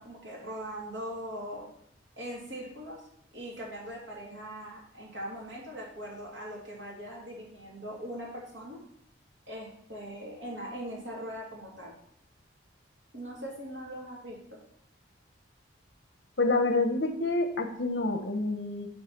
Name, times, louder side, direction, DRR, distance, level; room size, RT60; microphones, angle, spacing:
voice 1, 0.0-1.7 2.2-3.0 3.3-8.8 9.5-11.9 13.1-14.4, equal, 85° right, -4 dB, 3.3 m, -40 dB
voice 2, 16.4-18.9, left 2 dB, 70° left, 6 dB, 1.2 m, -27 dB
7.3 x 4.6 x 6.9 m, 0.68 s
head